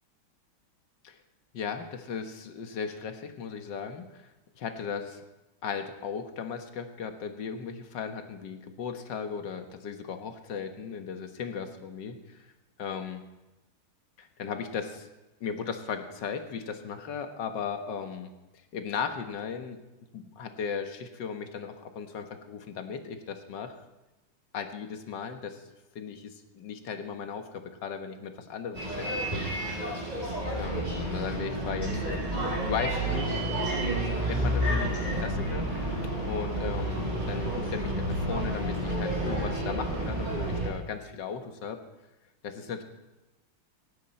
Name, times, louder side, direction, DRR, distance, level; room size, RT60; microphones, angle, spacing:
voice 1, 1.5-4.3 4.6-5.2 5.6-12.5 12.8-13.2 14.2-15.1 15.4-18.3 18.7-19.8 20.1-23.8 24.5-25.6 26.0-29.5 30.5-33.4 34.0-35.9 36.3-41.8 42.4-42.8, left 6 dB, 55° left, 6 dB, 1.9 m, -36 dB
Bus, 28.7-40.7, right 1 dB, 20° right, 5.2 m, -30 dB
18.0 x 15.5 x 4.3 m, 1.0 s
omnidirectional pair, 2.4 m